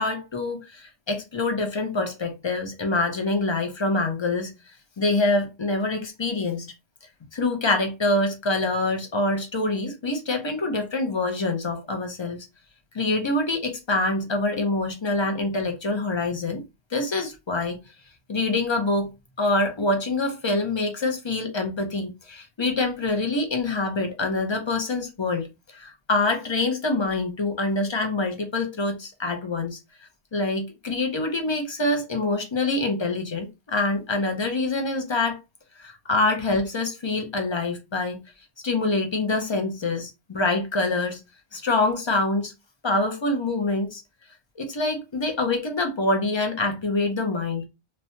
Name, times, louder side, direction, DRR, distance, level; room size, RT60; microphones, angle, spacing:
voice 1, 0.0-6.7 7.3-12.4 12.9-16.6 16.9-17.8 18.3-19.1 19.4-29.8 30.3-35.4 35.8-38.2 38.6-41.2 41.5-42.5 42.8-44.0 44.6-47.7, left 2 dB, 30° left, 0.6 m, -25 dB
3.1 x 2.1 x 2.8 m
omnidirectional pair, 1.1 m